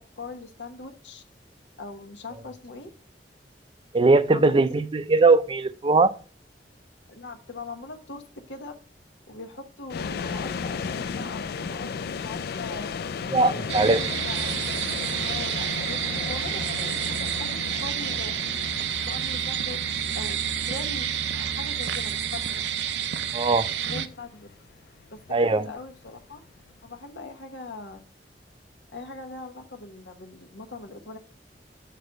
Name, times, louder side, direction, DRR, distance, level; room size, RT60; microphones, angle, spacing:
voice 1, 0.2-1.2 1.8-2.9 4.3-4.6 7.1-8.2 8.5-8.7 9.3-12.9 13.5-14.6 15.2-18.3 19.0-20.4 20.6-21.1 21.3-22.6 23.9-24.5 25.1-26.4 26.8-28.0 28.9-31.2, left 3 dB, 85° left, 6 dB, 1.2 m, -40 dB
voice 2, 3.9-6.1 13.3-14.0 23.3-23.6 25.3-25.6, right 3 dB, 30° right, 13 dB, 0.5 m, -20 dB
sound 1, 9.9-26.9, left 5 dB, 60° left, 0.4 m, -36 dB
sound 2, 13.7-24.1, right 9 dB, 80° right, 0.6 m, -29 dB
6.7 x 4.2 x 6.5 m, 0.39 s
head